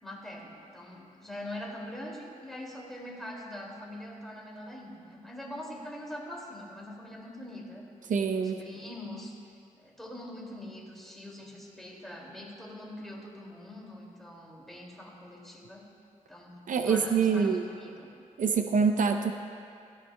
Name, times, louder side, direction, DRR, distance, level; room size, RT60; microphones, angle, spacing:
voice 1, 0.0-7.8 8.6-9.4 9.8-15.9 16.3-16.6 16.9-18.1, left 1 dB, ahead, -3 dB, 2.3 m, -43 dB
voice 2, 8.1-8.6 16.7-17.7 18.4-19.3, right 5 dB, 70° right, 6 dB, 0.6 m, -25 dB
17.0 x 14.0 x 2.2 m, 2.4 s
cardioid pair, 100°, 14 cm